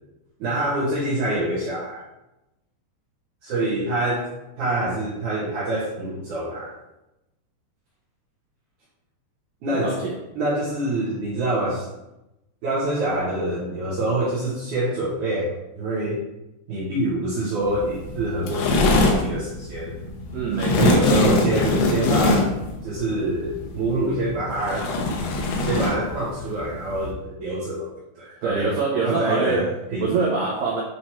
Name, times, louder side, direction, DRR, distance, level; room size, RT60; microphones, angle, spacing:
voice 1, 0.4-2.0 3.4-4.3 4.6-6.7 9.6-10.0 10.3-11.9 12.6-16.2 16.7-19.9 20.8-22.5 22.8-24.9 25.6-27.9 28.2-28.7 29.0-30.1, right 1 dB, 70° right, -7 dB, 1.9 m, -26 dB
voice 2, 9.7-10.1 20.3-21.2 28.4-29.7 30.0-30.8, right 4 dB, 85° right, -3 dB, 1.9 m, -24 dB
sound 1, 17.6-27.1, left 2 dB, 75° left, 2.7 m, -23 dB
8.5 x 3.1 x 4.3 m, 0.94 s
omnidirectional pair, 5.3 m